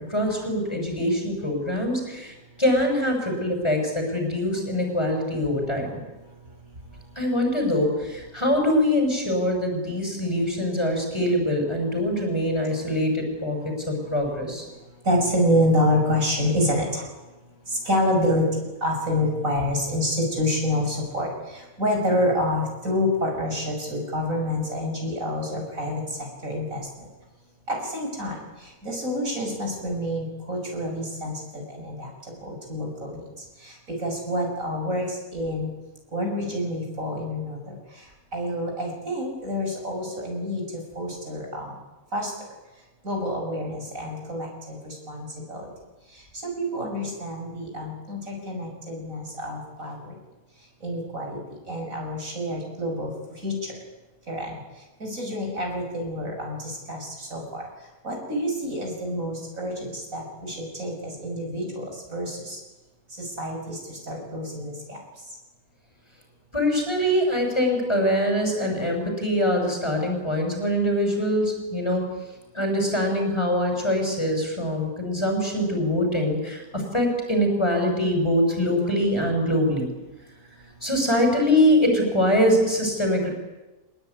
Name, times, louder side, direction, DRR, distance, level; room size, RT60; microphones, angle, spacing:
voice 1, 0.1-6.0 7.1-14.7 66.5-72.0 72.5-79.9 80.8-83.3, equal, 20° left, 2 dB, 6.7 m, -23 dB
voice 2, 15.1-17.0 17.9-18.4 18.8-21.3 21.8-26.0 26.4-26.8 27.7-28.4 28.8-32.1 32.4-33.2 34.0-35.1 35.3-35.7 36.1-37.6 38.3-40.6 41.0-41.7 42.1-42.3 43.1-45.6 46.7-50.0 50.8-51.4 51.7-53.1 53.4-53.5 54.3-54.5 55.0-56.6 56.9-57.4 58.0-59.7 60.1-61.8 62.1-62.6 63.4-63.8 64.1-65.0, left 1 dB, 65° right, 1 dB, 6.9 m, -27 dB
24.5 x 20.5 x 9.7 m, 1.1 s
omnidirectional pair, 1.5 m